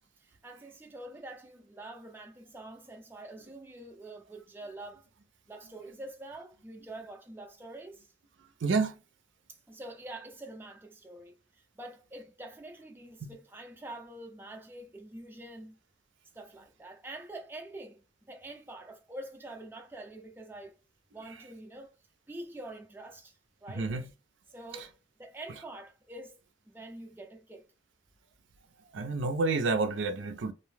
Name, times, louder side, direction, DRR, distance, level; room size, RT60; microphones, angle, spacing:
voice 1, 0.2-5.1 5.5-8.1 9.5-15.8 16.3-20.7 21.1-22.0 22.3-23.9 24.5-24.9 25.2-26.4 26.7-27.7, right 1 dB, 10° right, 0.4 m, -46 dB
voice 2, 8.6-9.0 13.2-13.3 23.7-24.1 24.7-24.9 28.9-30.5, right 3 dB, 85° right, 0.5 m, -29 dB
2.6 x 2.1 x 3.2 m
head